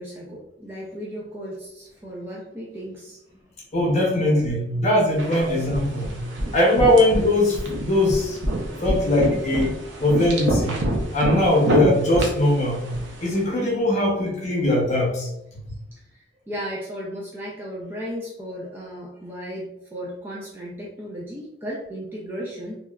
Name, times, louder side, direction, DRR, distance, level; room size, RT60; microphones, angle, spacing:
voice 1, 0.0-3.2 4.3-4.4 5.4-5.5 15.9-22.8, equal, 10° right, -5 dB, 0.4 m, -35 dB
voice 2, 3.7-6.2 6.5-8.4 8.8-9.7 10.0-10.8 11.1-12.9 13.2-15.3, left 1 dB, 40° left, -3 dB, 0.8 m, -20 dB
sound 1, 5.2-13.4, right 1 dB, 80° right, 0.6 m, -27 dB
2.9 x 2.3 x 2.3 m, 0.81 s
head